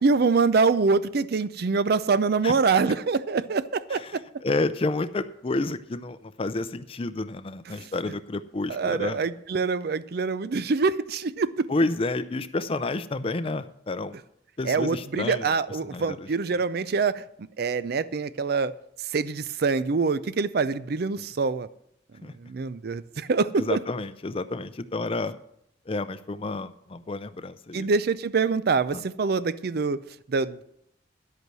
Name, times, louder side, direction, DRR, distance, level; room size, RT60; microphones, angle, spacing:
voice 1, 0.0-4.2 7.8-7.9 8.7-11.7 14.7-18.7 19.0-21.7 22.4-23.8 27.7-30.0 30.3-30.6, right 4 dB, 60° right, 15 dB, 0.5 m, -25 dB
voice 2, 2.4-2.8 3.9-9.3 11.7-14.1 14.6-15.5 15.8-16.3 21.2-21.3 22.2-22.3 23.6-25.4 25.9-27.9 28.9-29.0, left 2 dB, 30° left, 11 dB, 0.5 m, -30 dB
10.5 x 8.3 x 6.2 m, 0.73 s
head